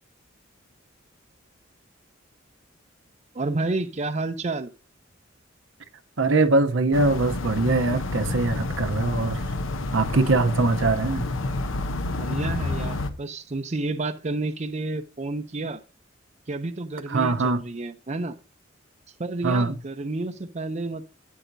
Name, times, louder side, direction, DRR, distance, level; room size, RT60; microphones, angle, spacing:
voice 1, 3.3-4.7 12.2-15.8 16.5-18.4 19.2-21.1, right 2 dB, 35° right, 0.6 m, -30 dB
voice 2, 6.2-9.4 9.9-11.3 17.1-17.6 19.4-19.8, right 3 dB, 75° right, 0.8 m, -22 dB
sound 1, 6.9-13.1, left 2 dB, 85° left, 0.8 m, -29 dB
12.0 x 9.1 x 2.7 m
head